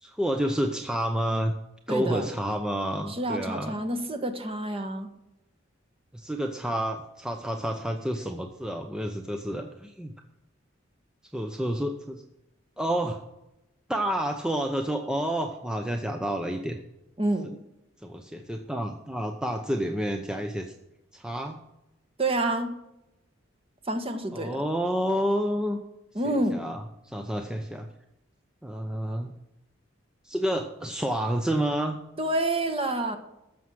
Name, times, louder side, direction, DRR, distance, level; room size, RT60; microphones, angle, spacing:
voice 1, 0.0-1.5 1.9-3.8 6.1-10.1 11.3-12.2 12.8-13.2 13.9-16.8 18.0-20.7 21.1-21.6 24.3-25.8 26.2-27.9 28.6-29.3 30.2-32.0, equal, 5° right, 4 dB, 0.7 m, -29 dB
voice 2, 1.9-2.3 3.1-5.1 17.2-17.5 22.2-22.7 23.8-24.6 26.1-26.6 32.2-33.2, right 1 dB, 30° right, 7 dB, 1.4 m, -28 dB
14.0 x 6.3 x 7.5 m, 0.91 s
head